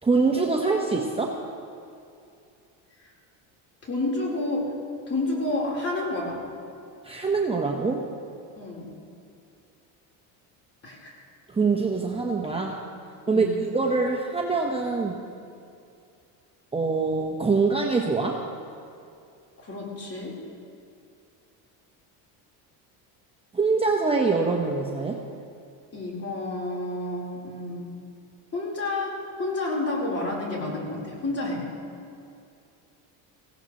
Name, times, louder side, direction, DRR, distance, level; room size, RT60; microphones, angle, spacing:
voice 1, 0.0-1.4 7.0-8.1 11.5-12.8 13.3-15.2 16.7-18.5 23.5-25.2, right 4 dB, 15° right, 0 dB, 1.1 m, -24 dB
voice 2, 3.8-4.7 5.1-6.4 8.5-8.9 10.8-11.2 13.3-13.6 19.6-20.4 25.9-27.9 28.5-31.7, left 2 dB, 30° left, -3 dB, 4.4 m, -30 dB
19.0 x 16.5 x 3.2 m, 2.5 s
supercardioid pair, 95°, 45 cm